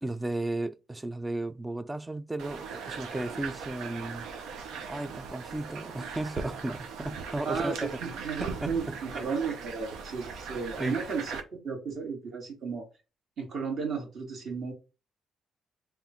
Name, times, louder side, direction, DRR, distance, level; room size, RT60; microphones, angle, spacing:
voice 1, 0.0-4.3 4.9-7.9 8.4-9.0 10.8-11.0, right 2 dB, 15° right, 0.3 m, -34 dB
sound 1, 2.4-11.4, right 6 dB, 85° right, 0.7 m, -39 dB
voice 2, 7.4-12.9 13.4-14.7, right 5 dB, 55° right, 1.8 m, -34 dB
3.6 x 2.4 x 4.1 m
cardioid pair, 120°, 0 cm